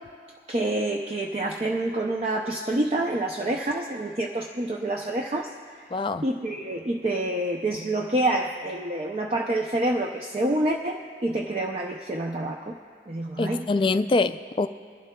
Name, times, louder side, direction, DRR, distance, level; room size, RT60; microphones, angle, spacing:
voice 1, 0.5-5.9 6.2-12.8 13.1-13.7, right 1 dB, 35° right, 1 dB, 0.5 m, -27 dB
voice 2, 5.9-6.2 13.4-14.7, left 3 dB, 30° left, 11 dB, 0.3 m, -24 dB
23.0 x 11.5 x 2.2 m, 2.4 s
head